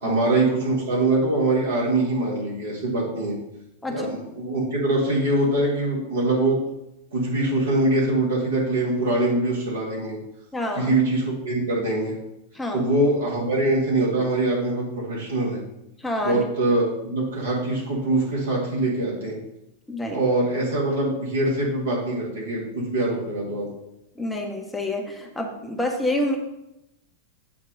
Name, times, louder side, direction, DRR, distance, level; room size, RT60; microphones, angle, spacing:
voice 1, 0.0-3.4 3.9-6.6 7.1-10.2 10.8-12.2 12.7-15.6 16.2-19.4 20.1-23.7, right 2 dB, 60° right, -4 dB, 1.9 m, -23 dB
voice 2, 10.5-10.9 12.5-12.9 16.0-16.4 19.9-20.2 24.2-26.4, left 1 dB, 5° left, 1 dB, 1.0 m, -28 dB
7.5 x 2.8 x 5.2 m, 0.86 s
figure-of-eight pair, 90°, 0 cm